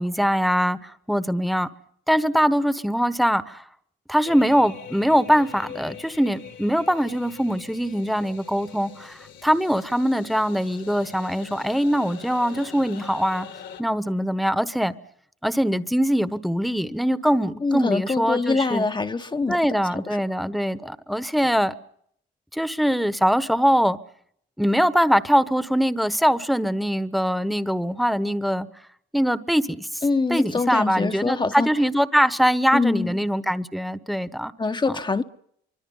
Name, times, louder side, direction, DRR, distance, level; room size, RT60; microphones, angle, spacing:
voice 1, 0.0-1.7 2.1-3.6 4.1-13.5 13.8-14.9 15.4-18.9 19.5-21.7 22.5-24.0 24.6-28.7 29.1-30.0 30.3-34.5 34.9-35.0, equal, ahead, 1.2 m, -22 dB
sound 1, 4.3-13.8, left 8 dB, 70° left, 2.0 m, -43 dB
voice 2, 17.6-19.6 19.9-20.2 30.0-31.7 32.7-33.2 34.6-35.2, left 3 dB, 25° left, 1.0 m, -24 dB
24.5 x 24.5 x 5.6 m
cardioid pair, 90°, 20 cm